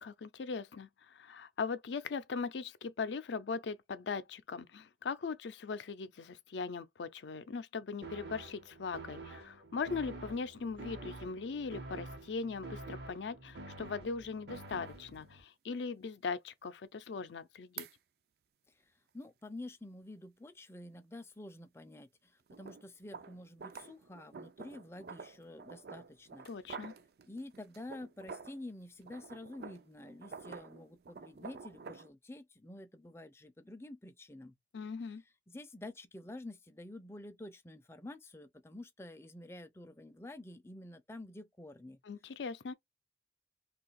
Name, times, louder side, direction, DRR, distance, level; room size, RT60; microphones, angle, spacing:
voice 1, 0.0-17.9 26.5-26.9 34.7-35.2 42.1-42.7, left 5 dB, 85° left, 0.4 m, -40 dB
sound 1, 8.0-15.4, right 2 dB, 75° right, 1.0 m, -48 dB
sound 2, 14.6-14.7 15.1-15.2 17.8-17.9 22.5-28.6 29.0-32.1, right 5 dB, 60° right, 0.4 m, -49 dB
voice 2, 19.1-26.5 27.3-34.6 35.5-42.0, left 1 dB, 15° left, 0.4 m, -49 dB
2.6 x 2.4 x 3.9 m
head